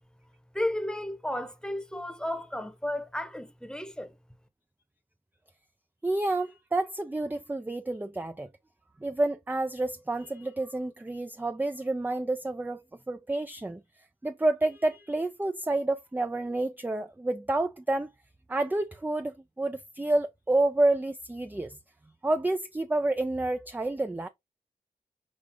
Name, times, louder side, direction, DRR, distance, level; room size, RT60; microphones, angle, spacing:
voice 1, 0.5-4.1, left 1 dB, 5° left, 1.0 m, -33 dB
voice 2, 6.0-8.5 9.0-12.8 13.1-13.8 14.2-18.1 18.5-21.8 22.2-24.3, right 2 dB, 10° right, 0.4 m, -29 dB
6.1 x 2.4 x 3.5 m
cardioid pair, 45°, 16 cm